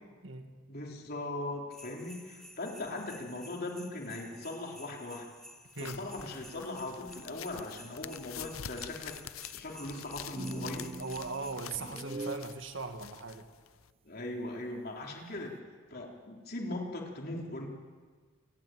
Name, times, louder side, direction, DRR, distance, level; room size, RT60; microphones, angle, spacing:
voice 1, 0.7-5.3 5.8-9.2 9.5-10.9 11.7-11.9 14.1-15.6 15.9-17.7, left 2 dB, 50° left, 0 dB, 3.7 m, -39 dB
sound 1, 1.7-11.5, equal, ahead, 2.3 m, -53 dB
sound 2, 5.7-13.9, left 10 dB, 90° left, 0.6 m, -47 dB
sound 3, 10.4-12.6, right 2 dB, 30° right, 0.7 m, -41 dB
voice 2, 11.0-13.5, right 3 dB, 65° right, 6 dB, 1.8 m, -39 dB
28.0 x 12.0 x 9.3 m, 1.5 s
head